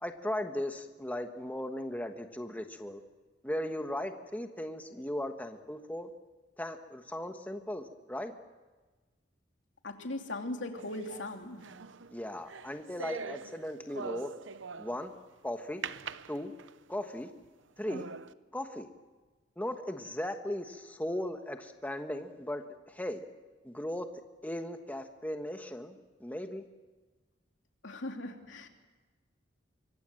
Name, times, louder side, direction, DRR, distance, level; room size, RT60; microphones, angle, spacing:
voice 1, 0.0-3.0 3.4-6.1 6.6-8.3 12.1-14.3 14.8-15.1 15.4-15.8 16.3-16.5 16.9-17.3 17.8-18.1 18.5-18.9 19.6-23.2 23.6-24.1 24.4-26.7, left 1 dB, 10° left, 6 dB, 1.2 m, -37 dB
voice 2, 9.8-11.6 27.8-28.7, left 2 dB, 80° left, 3 dB, 2.9 m, -39 dB
sound 1, 10.8-15.2 15.8-16.9 17.4-17.5 17.9-18.3, right 5 dB, 80° right, 0.8 m, -43 dB
25.0 x 23.5 x 7.7 m, 1.3 s
head